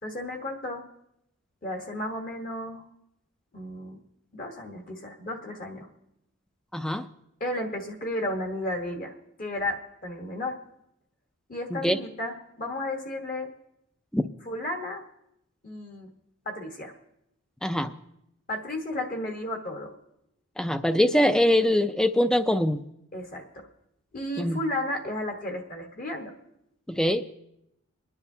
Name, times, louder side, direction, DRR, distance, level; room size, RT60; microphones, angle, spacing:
voice 1, 0.0-0.8 1.6-2.8 3.5-4.0 4.3-5.9 7.4-9.1 9.4-10.6 11.5-13.5 14.5-15.0 15.6-16.1 16.4-16.9 18.5-20.0 23.1-23.7 24.1-26.3, left 1 dB, 40° left, 3 dB, 1.2 m, -33 dB
voice 2, 6.7-7.1 11.7-12.0 14.1-14.3 17.6-18.0 20.6-22.9 24.4-24.6 26.9-27.4, left 1 dB, 5° left, 11 dB, 0.3 m, -23 dB
25.5 x 9.9 x 2.7 m, 0.83 s
head